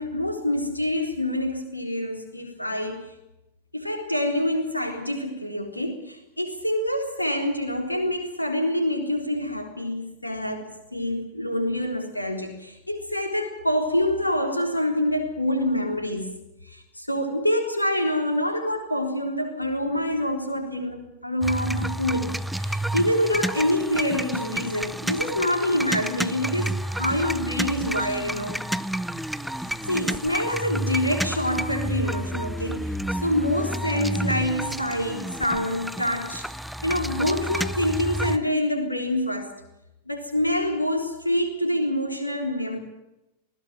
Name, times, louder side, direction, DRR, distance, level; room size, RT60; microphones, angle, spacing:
voice 1, 0.0-3.1 3.7-16.3 16.7-28.6 29.6-36.5 36.8-39.5 40.1-42.8, left 1 dB, 85° left, 4 dB, 3.9 m, -26 dB
sound 1, 21.4-38.4, right 1 dB, ahead, 0.8 m, -30 dB
20.5 x 17.0 x 9.1 m, 0.92 s
figure-of-eight pair, 90°, 0 cm